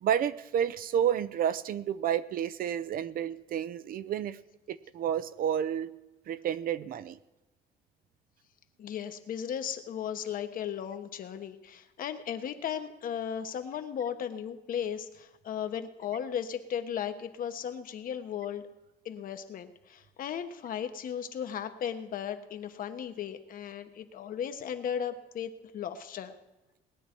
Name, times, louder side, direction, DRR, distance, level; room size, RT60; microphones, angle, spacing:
voice 1, 0.0-4.4 4.7-5.9 6.3-7.2, right 9 dB, 60° right, 14 dB, 0.6 m, -30 dB
voice 2, 8.8-18.6 19.0-26.3, left 8 dB, 55° left, 9 dB, 1.2 m, -36 dB
19.0 x 9.8 x 4.5 m, 1.0 s
cardioid pair, 110°, 17 cm